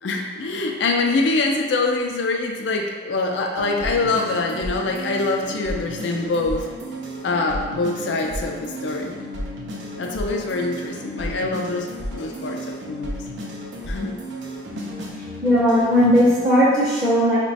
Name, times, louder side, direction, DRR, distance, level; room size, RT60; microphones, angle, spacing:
voice 1, 0.0-6.7 7.2-9.1 10.0-13.2 13.9-14.2, left 3 dB, 75° left, 1 dB, 0.4 m, -24 dB
sound 1, 3.6-16.5, equal, 85° right, 0.5 m, -33 dB
voice 2, 15.4-17.4, equal, 15° right, -10 dB, 0.6 m, -17 dB
3.0 x 2.2 x 4.0 m, 1.5 s
head